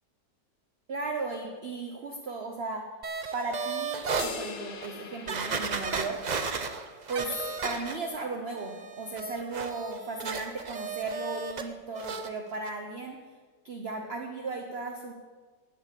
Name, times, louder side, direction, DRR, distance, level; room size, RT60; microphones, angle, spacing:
voice 1, 0.9-2.8 3.3-6.2 7.1-7.4 7.6-13.2 13.6-15.1, right 3 dB, 40° right, 3 dB, 1.0 m, -36 dB
sound 1, 3.0-4.3 4.8-4.9 5.3-8.2 8.6-11.7 11.9-12.3 12.6-12.7, right 5 dB, 70° right, 0.4 m, -34 dB
sound 2, 4.2-6.7, left 6 dB, 80° left, 1.9 m, -42 dB
13.0 x 6.8 x 8.4 m, 1.4 s
omnidirectional pair, 2.0 m